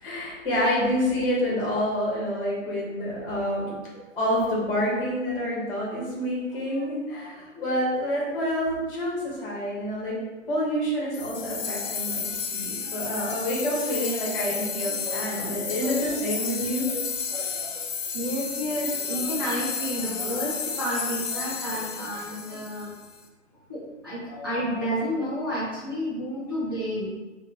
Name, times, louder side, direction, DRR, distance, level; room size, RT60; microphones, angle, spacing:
voice 1, 0.0-3.8 4.2-10.2 10.5-16.9, equal, 20° left, -5 dB, 0.9 m, -28 dB
sound 1, 11.1-23.2, left 6 dB, 75° left, 0.6 m, -32 dB
voice 2, 12.8-13.3 15.0-16.2 16.9-17.0 17.3-17.9 18.1-22.9 23.7-27.1, equal, 20° right, -8 dB, 0.3 m, -31 dB
3.9 x 2.1 x 3.3 m, 1.2 s
figure-of-eight pair, 135°, 39 cm